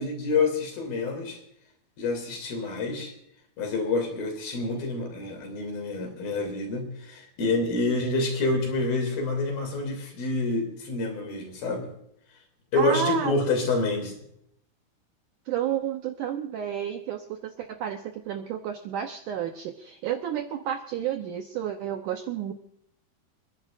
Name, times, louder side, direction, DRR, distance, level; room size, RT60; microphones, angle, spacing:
voice 1, 0.0-1.4 2.0-3.1 3.6-11.9 12.7-14.2, left 3 dB, 65° left, 3 dB, 4.5 m, -27 dB
voice 2, 12.7-13.3 15.5-22.5, right 9 dB, 80° right, 5 dB, 1.8 m, -31 dB
29.5 x 10.5 x 2.5 m, 0.74 s
omnidirectional pair, 4.7 m